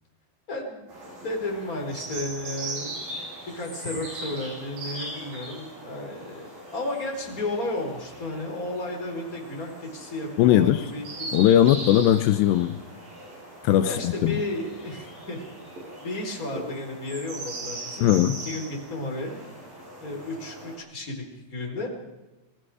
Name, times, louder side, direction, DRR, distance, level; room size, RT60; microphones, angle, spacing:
voice 1, 0.5-0.9 1.2-3.0 3.5-6.5 6.7-11.4 13.8-15.7 16.0-18.1 18.4-19.4 20.0-21.2 21.5-21.9, left 2 dB, 20° left, 1 dB, 3.9 m, -33 dB
sound 1, 0.9-20.8, right 2 dB, 40° right, 8.8 m, -40 dB
voice 2, 10.4-10.8 11.3-12.8 13.6-14.4 18.0-18.4, left 12 dB, 90° left, 10 dB, 2.4 m, -19 dB
26.5 x 20.0 x 4.9 m, 1.1 s
omnidirectional pair, 6.0 m